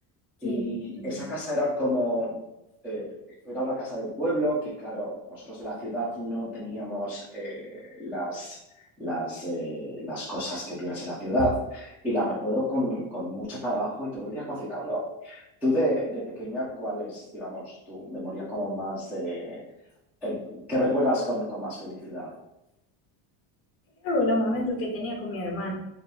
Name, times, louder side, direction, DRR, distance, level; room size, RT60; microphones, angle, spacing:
voice 1, 0.4-2.4 2.8-3.1 3.4-8.6 9.0-19.6 20.2-20.4 20.7-22.3, equal, 5° right, -10 dB, 0.4 m, -30 dB
voice 2, 24.0-25.7, left 1 dB, 30° left, -1 dB, 0.8 m, -28 dB
3.4 x 2.6 x 4.1 m, 0.90 s
cardioid pair, 180°, 48 cm